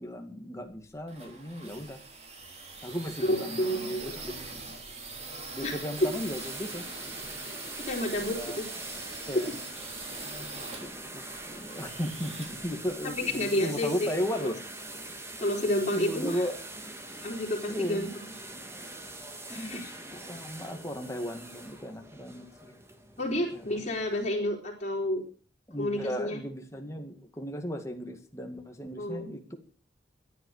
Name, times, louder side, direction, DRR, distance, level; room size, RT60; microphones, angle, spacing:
voice 1, 0.0-2.0 2.8-4.8 5.5-6.8 8.0-8.6 9.3-9.5 10.4-14.6 15.9-16.6 17.7-18.1 19.5-22.7 23.5-23.9 25.7-29.6, equal, 15° left, 4 dB, 2.1 m, -36 dB
sound 1, 0.7-13.4, right 3 dB, 35° right, 3.1 m, -43 dB
voice 2, 3.2-4.2 5.6-5.8 7.8-8.6 13.2-14.1 15.4-16.4 17.2-18.1 19.5-19.9 23.2-25.2 25.8-26.4 29.0-29.3, left 1 dB, 40° left, -5 dB, 3.6 m, -30 dB
sound 2, 6.0-24.3, right 2 dB, 15° right, 1.7 m, -43 dB
13.0 x 11.0 x 6.5 m, 0.41 s
head